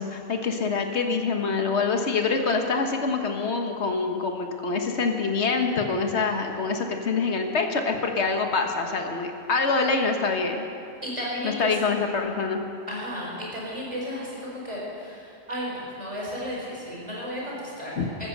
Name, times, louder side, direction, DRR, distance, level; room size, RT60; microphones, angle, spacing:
voice 1, 0.0-10.6 11.4-12.6 18.0-18.1, left 4 dB, 75° left, 4 dB, 1.6 m, -25 dB
voice 2, 11.0-11.7 12.9-18.3, equal, 30° right, -5 dB, 4.9 m, -34 dB
14.5 x 14.0 x 6.6 m, 2.5 s
omnidirectional pair, 1.1 m